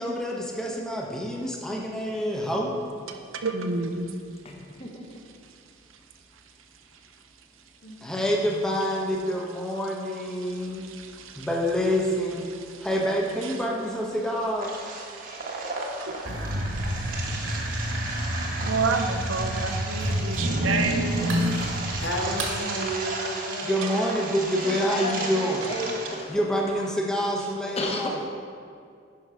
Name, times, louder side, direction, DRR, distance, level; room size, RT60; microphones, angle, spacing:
voice 1, 0.0-2.8 8.0-10.9 11.4-12.5 12.8-14.8 23.6-25.6 26.3-28.2, equal, 5° left, -1 dB, 0.8 m, -27 dB
voice 2, 3.1-4.1 10.3-11.5 12.5-12.9 13.4-13.6 15.0-16.4 16.7-17.9 18.6-21.7 22.3-22.9 23.8-24.0, right 4 dB, 90° right, 6 dB, 0.7 m, -32 dB
voice 3, 4.4-5.2 24.6-26.9 27.8-28.1, left 1 dB, 30° left, 1 dB, 1.0 m, -34 dB
voice 4, 7.8-8.6 15.7-16.4 22.0-25.3, equal, 60° left, 0 dB, 1.2 m, -35 dB
sound 1, 14.6-26.2, right 3 dB, 45° right, 1.1 m, -35 dB
sound 2, 16.2-22.5, equal, 70° right, 1.6 m, -28 dB
10.5 x 5.4 x 4.8 m, 2.2 s
head